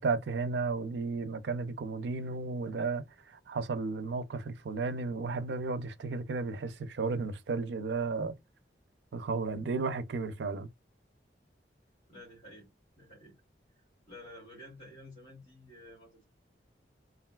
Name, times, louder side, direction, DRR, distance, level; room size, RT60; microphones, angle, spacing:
voice 1, 0.0-3.0 3.5-8.4 9.1-10.7, right 4 dB, 75° right, 0.4 m, -33 dB
voice 2, 12.1-12.7 12.9-13.3 14.1-16.3, left 1 dB, 40° left, 2.1 m, -51 dB
3.2 x 2.5 x 2.2 m
head